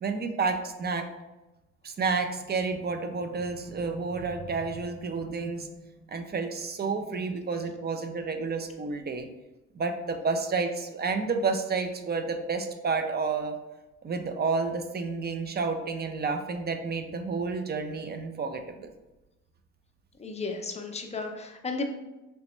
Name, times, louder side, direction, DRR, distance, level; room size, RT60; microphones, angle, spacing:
voice 1, 0.0-1.1 1.8-9.3 9.7-13.6 14.0-18.6, right 4 dB, 35° right, 6 dB, 0.4 m, -30 dB
voice 2, 20.2-21.9, left 3 dB, 20° left, 3 dB, 0.5 m, -34 dB
3.1 x 3.0 x 3.0 m, 1.0 s
cardioid pair, 90°, 30 cm